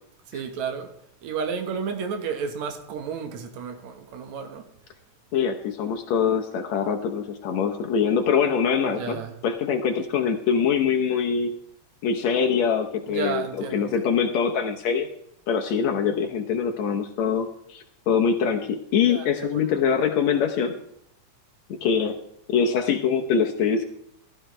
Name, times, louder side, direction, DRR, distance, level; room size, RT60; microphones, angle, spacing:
voice 1, 0.3-0.9 1.2-4.7 8.9-9.3 13.1-14.1 19.1-19.7, right 6 dB, 70° right, 2.8 m, -32 dB
voice 2, 5.3-11.5 12.0-15.1 15.5-20.8 21.7-22.2 22.5-23.9, left 6 dB, 70° left, 2.2 m, -24 dB
15.5 x 13.5 x 3.3 m
omnidirectional pair, 3.3 m